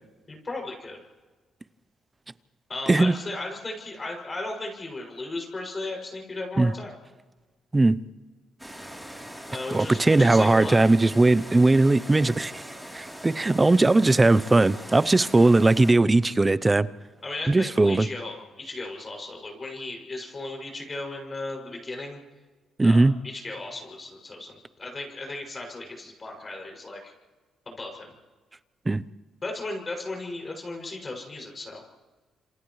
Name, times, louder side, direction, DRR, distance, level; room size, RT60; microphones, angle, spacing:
voice 1, 0.3-1.0 2.7-6.9 9.5-10.8 17.2-22.2 22.8-27.1 27.7-28.1 29.4-31.8, left 2 dB, 30° left, 1 dB, 6.6 m, -36 dB
sound 1, 8.6-15.9, equal, ahead, 3.4 m, -42 dB
voice 2, 9.7-12.6 12.9-16.9 17.5-18.1 22.8-23.2 28.9-29.0, right 2 dB, 20° right, 17 dB, 0.6 m, -19 dB
29.5 x 27.5 x 3.2 m, 1.3 s
cardioid pair, 90°, 0 cm